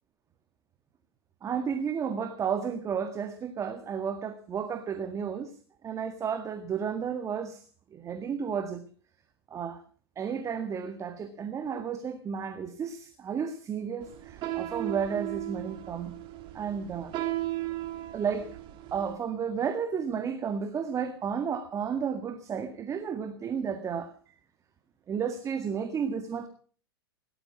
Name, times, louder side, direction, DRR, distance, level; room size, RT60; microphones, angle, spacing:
voice 1, 1.4-5.5 5.8-7.6 7.9-8.8 9.5-9.8 10.2-16.2 16.5-17.1 18.1-18.5 18.9-24.1 25.1-26.5, right 7 dB, 25° right, 9 dB, 1.9 m, -32 dB
sound 1, 14.0-19.2, right 15 dB, 40° right, 3.0 m, -36 dB
18.0 x 13.0 x 6.1 m, 0.43 s
hypercardioid pair, 110°, 13 cm